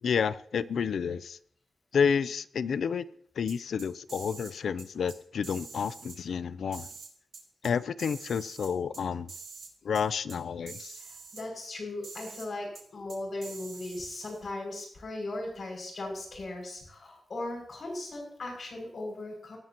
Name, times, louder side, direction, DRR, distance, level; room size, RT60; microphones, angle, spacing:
voice 1, 0.0-1.4 1.9-3.1 3.4-6.9 7.6-9.3 9.8-11.0, left 6 dB, 75° left, 0.5 m, -30 dB
sound 1, 3.5-4.5 4.8-5.2 5.4-6.2 6.7-7.7 8.0-9.0 9.3-9.7 9.9-10.0 10.3-10.4 10.7-11.4 12.0-12.5 12.7-12.8 13.1-14.4, right 4 dB, 50° right, 4.2 m, -46 dB
voice 2, 11.0-19.6, left 2 dB, 50° left, 6.3 m, -38 dB
18.5 x 11.0 x 2.9 m
wide cardioid pair, 140°, 0 cm